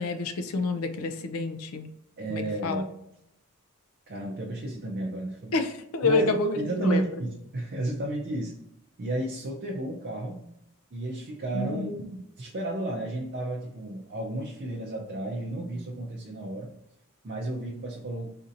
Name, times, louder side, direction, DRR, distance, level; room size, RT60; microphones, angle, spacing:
voice 1, 0.0-1.9 2.3-2.8 5.5-7.0 11.5-12.0, left 3 dB, 70° left, 8 dB, 0.4 m, -28 dB
voice 2, 2.2-2.8 4.1-5.6 6.0-8.5 9.0-10.4 10.9-16.7 17.2-18.3, right 1 dB, 45° right, -2 dB, 0.5 m, -32 dB
4.2 x 2.7 x 2.5 m, 0.80 s
head